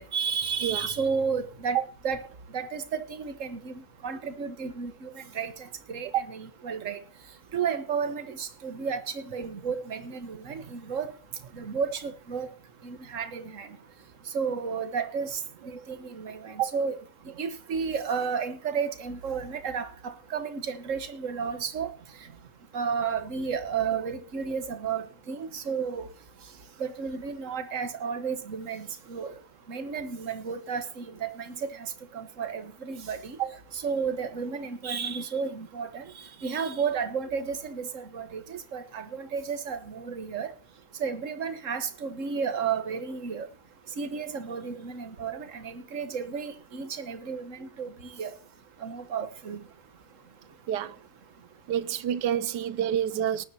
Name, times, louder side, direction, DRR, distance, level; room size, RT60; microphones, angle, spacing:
voice 1, 0.0-2.2 2.5-5.5 5.9-7.0 7.5-11.1 11.5-12.5 12.8-13.7 14.3-15.4 15.7-17.0 17.4-21.9 22.7-26.1 26.8-29.3 29.7-33.4 33.7-36.1 36.4-40.5 41.0-43.5 44.0-48.3 48.8-49.6, right 6 dB, 45° right, 1.7 m, -32 dB
voice 2, 51.7-53.4, right 10 dB, 75° right, 1.5 m, -27 dB
19.5 x 11.0 x 2.9 m
omnidirectional pair, 1.9 m